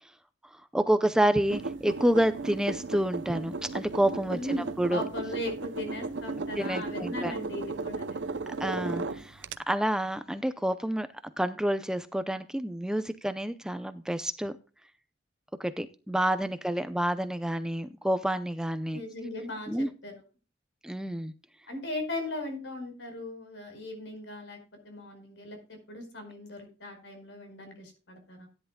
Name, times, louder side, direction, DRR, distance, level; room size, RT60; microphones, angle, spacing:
voice 1, 0.7-4.4 4.8-5.0 6.5-7.3 8.6-11.1 11.4-14.5 15.6-19.0 19.7-19.9 20.8-21.3, right 1 dB, 5° right, 0.5 m, -28 dB
sound 1, 1.5-9.6, right 3 dB, 70° right, 0.7 m, -35 dB
voice 2, 4.3-8.4 18.9-20.1 21.7-24.6 24.8-28.5, left 1 dB, 75° left, 4.8 m, -38 dB
17.0 x 10.5 x 2.3 m
head